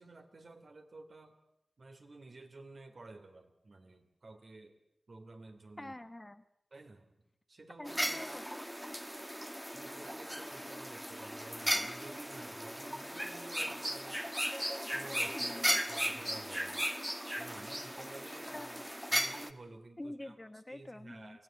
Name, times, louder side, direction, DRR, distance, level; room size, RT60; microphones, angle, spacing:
voice 1, 0.0-1.3 1.8-4.8 5.1-6.0 6.7-7.1 7.5-8.3 9.7-14.2 14.9-16.9 17.4-18.7 19.1-20.3 20.7-21.4, right 2 dB, 65° right, 5 dB, 3.0 m, -52 dB
voice 2, 5.8-6.4 7.8-8.7 15.3-15.8 18.5-18.7 20.0-21.4, left 1 dB, 25° left, 10 dB, 1.2 m, -46 dB
sound 1, 7.9-19.5, equal, 5° right, 1.5 m, -36 dB
24.0 x 17.0 x 9.0 m, 0.82 s
cardioid pair, 55°, 0 cm